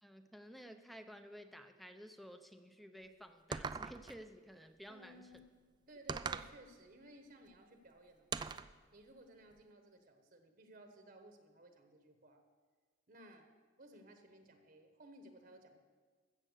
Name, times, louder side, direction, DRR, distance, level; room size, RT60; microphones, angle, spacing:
voice 1, 0.0-5.3 6.1-6.2, equal, ahead, 7 dB, 0.7 m, -54 dB
sound 1, 3.5-4.2 6.1-6.6 8.3-8.7, right 5 dB, 25° right, 0.3 m, -40 dB
voice 2, 4.9-5.4 5.9-8.6 8.9-12.4 13.1-13.5 13.8-15.8, right 1 dB, 50° right, 5 dB, 1.2 m, -58 dB
14.5 x 7.6 x 6.6 m, 1.4 s
head